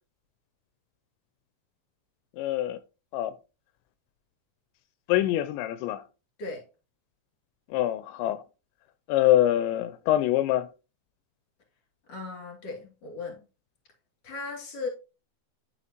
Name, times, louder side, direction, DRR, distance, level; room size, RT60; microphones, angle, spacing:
voice 1, 2.4-2.8 3.1-3.3 5.1-6.0 7.7-8.4 9.1-10.7, left 13 dB, 85° left, 2.8 m, -24 dB
voice 2, 12.1-13.4 14.2-14.9, left 3 dB, 30° left, 2.7 m, -37 dB
11.0 x 5.8 x 2.9 m
omnidirectional pair, 5.2 m